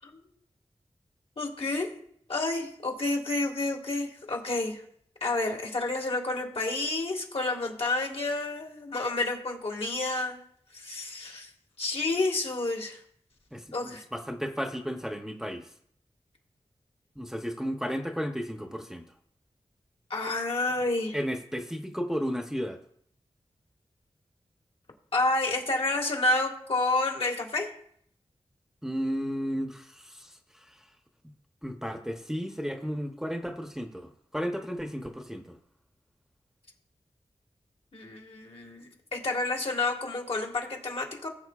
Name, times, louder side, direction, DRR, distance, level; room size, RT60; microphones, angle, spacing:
voice 1, 1.4-1.9 2.3-4.8 5.2-10.4 10.7-11.5 11.8-13.0 13.7-14.0 20.1-21.2 25.1-27.7 37.9-41.3, left 2 dB, 60° left, 1 dB, 2.0 m, -29 dB
voice 2, 13.5-15.6 17.2-19.0 21.1-22.8 28.8-30.8 31.6-35.6, equal, 5° right, 4 dB, 0.9 m, -33 dB
18.5 x 7.5 x 2.5 m, 0.66 s
wide cardioid pair, 60°, 11 cm